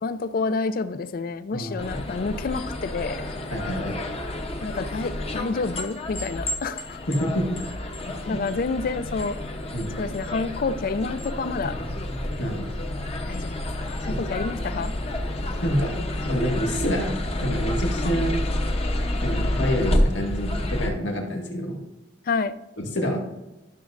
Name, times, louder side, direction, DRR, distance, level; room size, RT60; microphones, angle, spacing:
voice 1, 0.0-3.2 4.6-7.0 8.3-9.4 10.0-11.8 13.3-13.7 14.0-14.9 22.3-22.6, left 4 dB, 50° left, 13 dB, 0.4 m, -28 dB
sound 1, 1.8-20.9, left 1 dB, 35° left, 0.8 m, -29 dB
voice 2, 3.5-4.0 7.1-7.6 8.1-8.4 9.7-9.9 12.4-12.7 14.1-14.2 15.6-16.0 16.3-18.4 19.2-21.8 22.8-23.2, equal, 85° left, 0 dB, 1.8 m, -27 dB
12.5 x 6.3 x 2.5 m, 1.0 s
head